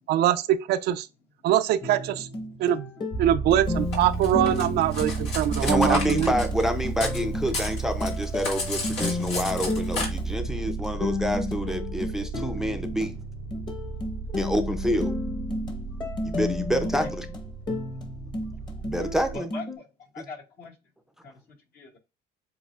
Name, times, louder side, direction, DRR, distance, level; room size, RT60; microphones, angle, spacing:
voice 1, 0.1-1.1 1.4-2.3 2.6-2.9 3.2-6.3, right 12 dB, 75° right, 0.5 m, -23 dB
sound 1, 1.8-19.8, left 2 dB, 25° left, 1.1 m, -33 dB
sound 2, 3.1-19.4, right 4 dB, 45° left, 2.1 m, -34 dB
Cutlery silverware, 3.9-7.2 7.5-10.1, left 3 dB, 80° left, 2.1 m, -33 dB
voice 2, 5.6-13.2 14.4-15.1 16.2-17.3 18.8-19.5 20.2-20.3, equal, 5° right, 0.6 m, -28 dB
voice 3, 16.8-17.1 18.1-18.2 19.3-19.9 20.1-20.7 21.2-21.3 21.7-22.0, left 3 dB, 65° left, 2.3 m, -40 dB
7.6 x 2.6 x 2.4 m
cardioid pair, 110°, 17 cm